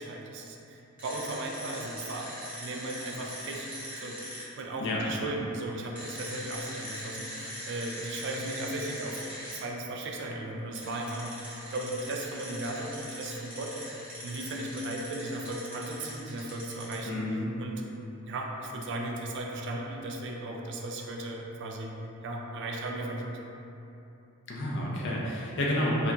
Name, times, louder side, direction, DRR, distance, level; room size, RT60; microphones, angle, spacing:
voice 1, 0.0-2.3 2.6-3.7 4.0-13.8 14.2-17.8 18.3-22.0 22.2-23.4, right 1 dB, 55° right, 0 dB, 0.3 m, -36 dB
sound 1, 1.0-4.4 5.9-9.6 10.8-17.0, equal, 5° right, 0.9 m, -41 dB
voice 2, 4.8-5.3 17.1-17.5 24.5-26.1, left 1 dB, 55° left, -4 dB, 0.6 m, -30 dB
2.8 x 2.5 x 3.4 m, 2.9 s
head